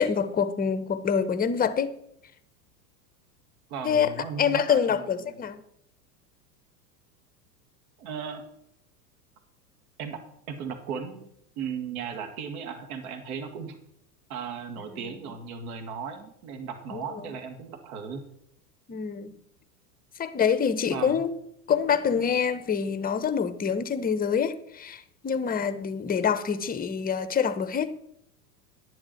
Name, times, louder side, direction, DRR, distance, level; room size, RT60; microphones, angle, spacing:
voice 1, 0.0-1.9 3.8-4.1 4.4-5.6 16.9-17.0 18.9-19.4 20.2-21.3 21.7-28.0, left 7 dB, 15° left, 1.0 m, -26 dB
voice 2, 3.7-5.4 8.0-8.4 10.0-10.2 10.5-11.3 11.6-13.8 14.3-18.2 20.9-21.2, right 6 dB, 60° right, 2.3 m, -36 dB
10.5 x 10.5 x 4.5 m
hypercardioid pair, 90°, 50 cm